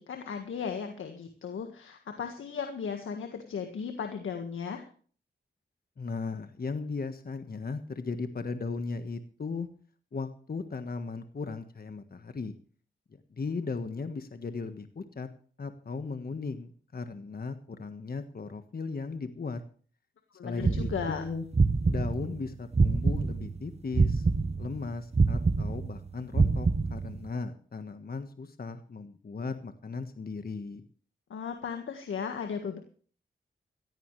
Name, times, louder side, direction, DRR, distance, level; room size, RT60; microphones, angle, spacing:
voice 1, 0.0-4.8 20.3-21.2 31.3-32.8, left 6 dB, 90° left, 5 dB, 1.7 m, -36 dB
voice 2, 6.0-9.7 10.1-12.5 13.3-15.3 15.6-19.6 20.4-21.4 21.9-24.3 24.6-30.9, left 4 dB, 50° left, 8 dB, 1.4 m, -37 dB
sound 1, 20.6-23.6 23.9-27.3, right 4 dB, 30° right, 0.9 m, -26 dB
17.5 x 14.5 x 3.3 m, 0.44 s
cardioid pair, 60°, 20 cm